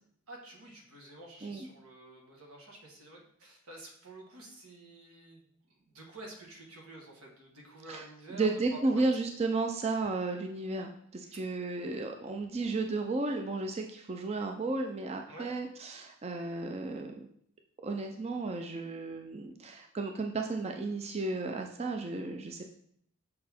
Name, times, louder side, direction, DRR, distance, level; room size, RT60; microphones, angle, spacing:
voice 1, 0.3-5.5 5.7-9.0 11.2-11.4 15.3-15.5, right 2 dB, 85° right, 0 dB, 1.5 m, -49 dB
voice 2, 8.3-17.3 17.8-22.6, right 3 dB, 30° right, 3 dB, 0.4 m, -33 dB
6.4 x 4.1 x 4.3 m, 0.66 s
head